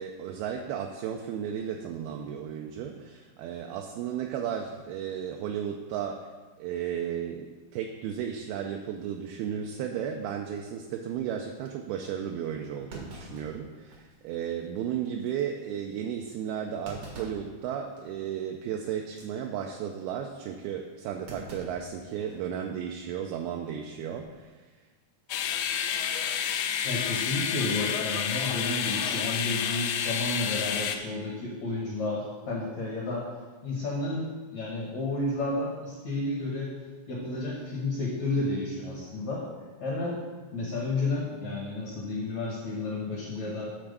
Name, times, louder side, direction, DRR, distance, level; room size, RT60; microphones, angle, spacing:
voice 1, 0.0-6.3 6.6-24.7, right 8 dB, 85° right, 3 dB, 2.2 m, -34 dB
Thump thud, 12.0-12.1 12.9-14.2 14.6-14.7 15.2-15.4 16.8-17.5 18.0-18.2 19.0-19.3 21.3-22.5 22.8-22.9 24.0-24.4, right 2 dB, 65° right, 1.4 m, -45 dB
sound 1, 25.3-31.0, left 8 dB, 80° left, 2.5 m, -29 dB
voice 2, 26.8-33.3 33.6-36.7 37.1-39.5 39.8-40.2 40.5-43.7, left 2 dB, 60° left, -4 dB, 1.9 m, -31 dB
9.4 x 4.3 x 6.6 m, 1.4 s
omnidirectional pair, 4.9 m